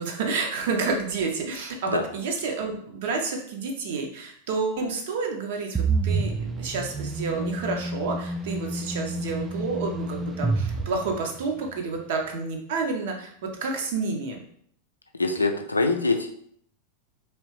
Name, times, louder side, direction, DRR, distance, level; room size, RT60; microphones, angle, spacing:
voice 1, 0.0-13.3 13.6-14.4, right 4 dB, 55° right, 2 dB, 0.6 m, -29 dB
sound 1, 5.7-11.7, right 3 dB, 10° right, 0.3 m, -29 dB
voice 2, 15.2-16.3, left 3 dB, 80° left, 5 dB, 0.4 m, -24 dB
3.1 x 3.0 x 3.1 m, 0.65 s
figure-of-eight pair, 90°, 0 cm